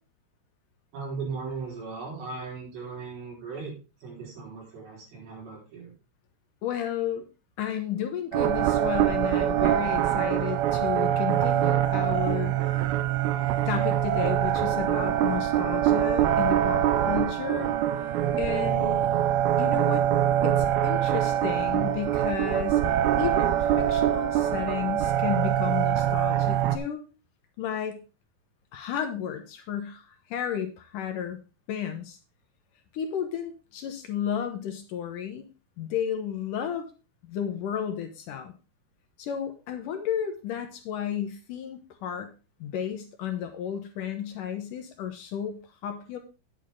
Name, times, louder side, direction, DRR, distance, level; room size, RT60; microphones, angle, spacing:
voice 1, 0.9-3.7 4.0-5.9 18.6-19.2, right 4 dB, 70° right, -1 dB, 5.7 m, -38 dB
voice 2, 6.6-7.3 7.6-12.6 13.7-17.7 18.0-18.1 18.4-19.0 19.6-20.1 20.4-22.8 23.2-27.0 27.6-28.0 28.7-31.4 31.7-32.2 32.9-35.5 35.8-36.9 37.2-38.5 39.2-42.3 42.6-46.2, left 9 dB, 70° left, 5 dB, 2.3 m, -33 dB
sound 1, 8.3-26.8, right 11 dB, 90° right, 2.6 m, -24 dB
10.0 x 8.6 x 3.7 m, 0.31 s
omnidirectional pair, 4.4 m